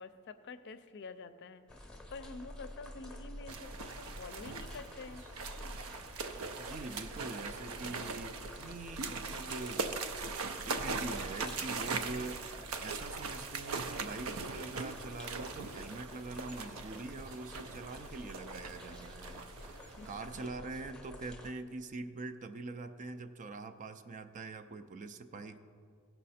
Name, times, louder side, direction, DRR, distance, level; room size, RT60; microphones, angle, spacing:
voice 1, 0.0-1.6 2.1-5.3 19.6-20.1, left 4 dB, 55° left, 12 dB, 0.5 m, -48 dB
sound 1, 1.7-21.5, left 1 dB, 5° left, 0.8 m, -50 dB
sound 2, 3.5-20.5, right 4 dB, 75° right, 0.6 m, -41 dB
voice 2, 6.6-9.9 10.2-10.4 10.6-19.4 19.7-25.6, right 3 dB, 35° right, 9 dB, 0.4 m, -44 dB
16.5 x 5.6 x 4.2 m, 2.3 s
head